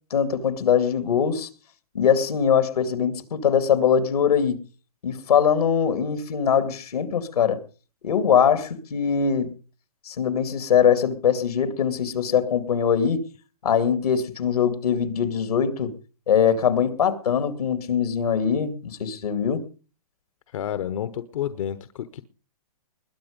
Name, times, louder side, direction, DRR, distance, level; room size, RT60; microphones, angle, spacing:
voice 1, 0.1-1.5 1.9-4.6 5.0-7.6 8.0-9.5 10.1-13.3 13.6-15.9 16.3-19.6, left 7 dB, 85° left, 2.6 m, -22 dB
voice 2, 20.5-22.2, left 10 dB, 60° left, 1.0 m, -30 dB
21.0 x 8.8 x 5.2 m
hypercardioid pair, 150°, 19 cm